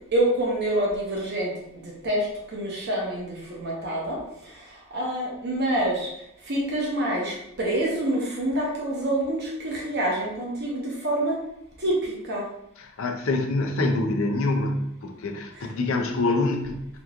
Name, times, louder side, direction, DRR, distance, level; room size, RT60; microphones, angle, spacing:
voice 1, 0.1-11.4 11.8-12.5, right 1 dB, 50° right, -3 dB, 0.8 m, -27 dB
voice 2, 12.8-16.8, left 2 dB, 75° left, 3 dB, 0.5 m, -25 dB
3.5 x 3.0 x 2.4 m, 0.76 s
head